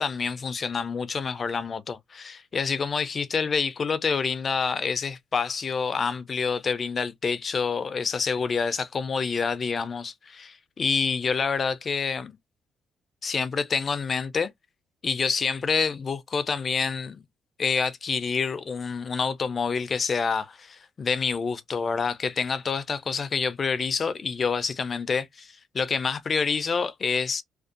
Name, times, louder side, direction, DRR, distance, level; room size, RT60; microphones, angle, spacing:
voice 1, 0.0-12.4 13.2-14.5 15.0-17.2 17.6-27.4, left 5 dB, 40° left, 0.4 m, -27 dB
2.6 x 2.2 x 2.4 m
cardioid pair, 105°, 0 cm